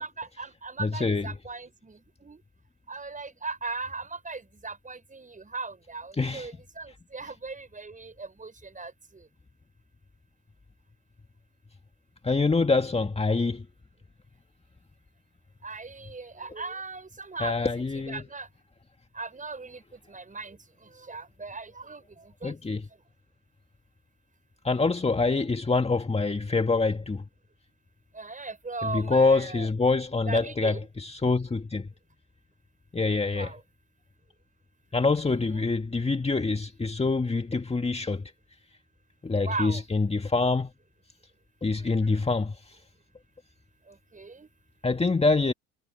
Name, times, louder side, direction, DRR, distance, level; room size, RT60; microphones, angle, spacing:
voice 1, 0.0-2.4 2.9-8.9 15.6-17.7 18.1-18.5 19.2-19.8 20.1-20.6 21.1-22.0 22.4-22.5 28.2-29.7 30.3-30.9 33.3-33.6 39.4-39.8 41.8-42.2 44.1-44.5, right 4 dB, 20° right, 7.1 m, -38 dB
voice 2, 0.8-1.4 6.1-6.5 12.2-13.7 17.4-18.3 22.4-22.9 24.6-27.2 28.8-31.9 32.9-33.5 34.9-38.3 39.2-40.7 41.6-42.8 44.8-45.5, left 3 dB, 15° left, 1.9 m, -25 dB
supercardioid pair, 75°, 35 cm